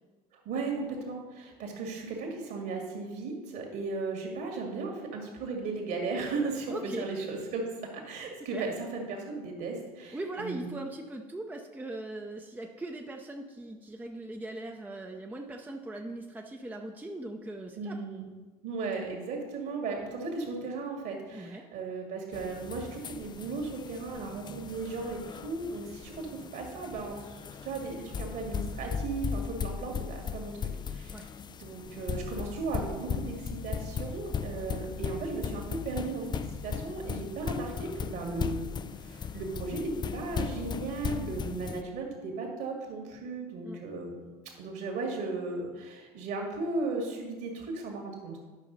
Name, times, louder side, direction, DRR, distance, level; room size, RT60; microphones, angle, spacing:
voice 1, 0.4-10.7 17.8-18.2 18.6-36.3 36.6-38.7 39.0-44.3 44.6-48.4, right 3 dB, 55° right, 1 dB, 2.3 m, -36 dB
voice 2, 6.7-7.1 8.5-8.7 10.1-18.0 21.3-21.7 31.1-31.3 43.6-43.8, right 1 dB, 10° right, 2 dB, 0.7 m, -40 dB
sound 1, 22.3-41.8, left 6 dB, 25° left, 0.4 m, -37 dB
10.5 x 5.9 x 4.0 m, 1.3 s
figure-of-eight pair, 60°, 19 cm